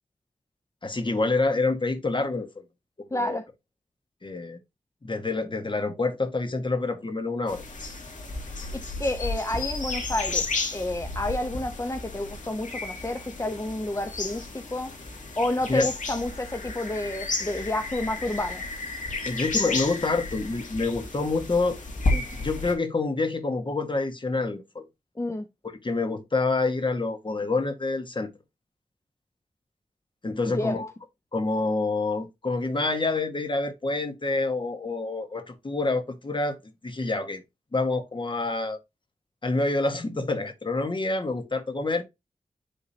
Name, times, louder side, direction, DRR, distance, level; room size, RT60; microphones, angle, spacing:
voice 1, 0.8-2.5 3.0-3.4 4.2-4.6 5.0-7.6 15.7-15.9 19.3-21.8 22.1-24.8 25.8-28.3 30.2-30.9 31.3-36.6 36.8-37.4 37.7-38.8 39.4-42.0, left 3 dB, 40° left, 1.6 m, -27 dB
voice 2, 3.1-3.4 9.0-10.5 10.7-14.9 15.4-18.6 25.2-25.5 30.5-30.8, left 1 dB, 25° left, 0.9 m, -30 dB
sound 1, 7.5-22.7, left 3 dB, 75° left, 2.2 m, -32 dB
10.5 x 3.8 x 2.8 m
wide cardioid pair, 95°, 13 cm